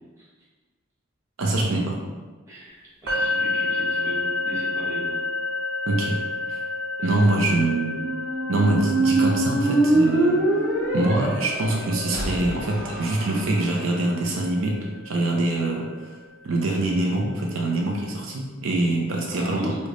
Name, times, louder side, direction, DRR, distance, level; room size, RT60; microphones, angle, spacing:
voice 1, 1.4-2.0 5.9-6.2 6.5-6.6 7.0-8.0 8.5-10.4 10.9-16.2 16.4-19.7, right 2 dB, 75° right, -1 dB, 0.5 m, -24 dB
voice 2, 2.5-5.2 7.0-7.2 11.6-11.8 19.3-19.8, equal, 15° right, -9 dB, 1.0 m, -37 dB
sound 1, 3.1-16.9, left 3 dB, 60° right, 1.4 m, -31 dB
Squeak, 7.8-13.8, right 2 dB, 40° right, 1.1 m, -24 dB
3.2 x 2.1 x 3.7 m, 1.3 s
head